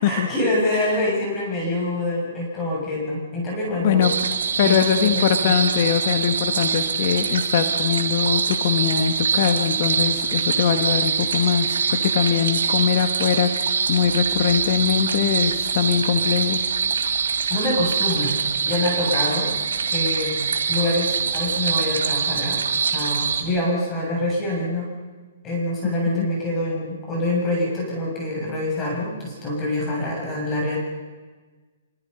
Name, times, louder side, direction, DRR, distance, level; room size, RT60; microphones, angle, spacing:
voice 1, 0.0-4.1 4.6-5.5 17.5-18.4 18.6-19.5 19.9-20.4 20.7-22.6 22.9-24.9 25.4-30.8, left 1 dB, 20° left, -3 dB, 7.6 m, -25 dB
voice 2, 3.8-4.1 4.6-13.5 13.9-16.6 25.8-26.3, left 8 dB, 50° left, 7 dB, 1.7 m, -22 dB
sound 1, 4.0-23.4, right 6 dB, 80° right, 4.1 m, -24 dB
25.5 x 25.0 x 5.6 m, 1.3 s
hypercardioid pair, 150°, 0 cm